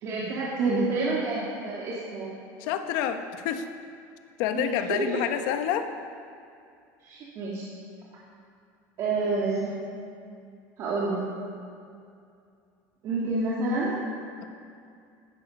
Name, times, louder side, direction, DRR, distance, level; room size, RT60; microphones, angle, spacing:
voice 1, 0.0-2.3 4.5-5.2 7.0-7.7 9.0-9.8 10.8-11.5 13.0-14.0, right 3 dB, 40° right, -6 dB, 2.6 m, -28 dB
voice 2, 2.6-3.7 4.4-5.9 14.4-14.5, left 9 dB, 65° left, 7 dB, 1.2 m, -28 dB
15.5 x 12.0 x 5.5 m, 2.4 s
cardioid pair, 160°, 8 cm